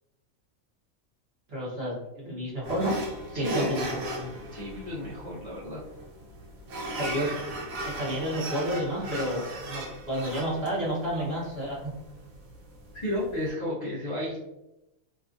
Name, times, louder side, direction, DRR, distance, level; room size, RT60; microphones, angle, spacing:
voice 1, 1.5-3.0 3.3-4.3 7.0-7.3 7.8-11.9, equal, 50° right, -6 dB, 1.0 m, -31 dB
sound 1, 2.6-13.5, right 1 dB, 80° right, 1.1 m, -37 dB
voice 2, 3.3-3.8 4.5-5.8 13.0-14.4, left 1 dB, 70° left, -5 dB, 0.4 m, -32 dB
2.8 x 2.3 x 2.5 m, 0.91 s
omnidirectional pair, 1.5 m